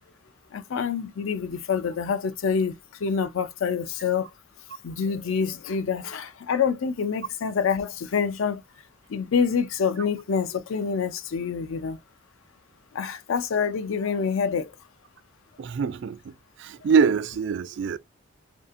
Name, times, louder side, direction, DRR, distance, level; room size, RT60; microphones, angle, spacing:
voice 1, 0.5-4.3 4.8-8.6 9.1-12.0 12.9-14.7, left 6 dB, 70° left, 0.4 m, -26 dB
voice 2, 15.6-16.3 16.6-18.0, right 6 dB, 60° right, 0.3 m, -24 dB
2.6 x 2.4 x 2.4 m
head